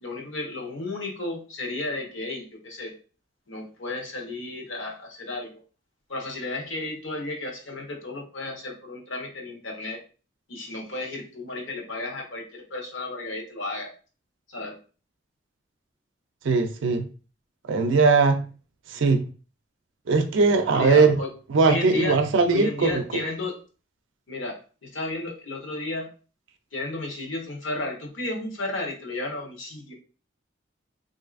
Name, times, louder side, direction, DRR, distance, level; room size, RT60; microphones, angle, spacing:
voice 1, 0.0-2.9 3.5-5.5 6.1-10.0 10.5-13.9 14.5-14.7 20.7-21.3 21.6-22.2 22.5-23.5 24.3-26.1 26.7-29.9, left 2 dB, 80° left, 0 dB, 1.0 m, -33 dB
voice 2, 16.4-17.0 17.7-18.4 18.9-19.2 20.1-21.2 21.5-23.0, right 4 dB, 75° right, 6 dB, 0.4 m, -20 dB
3.2 x 2.6 x 2.5 m, 0.36 s
head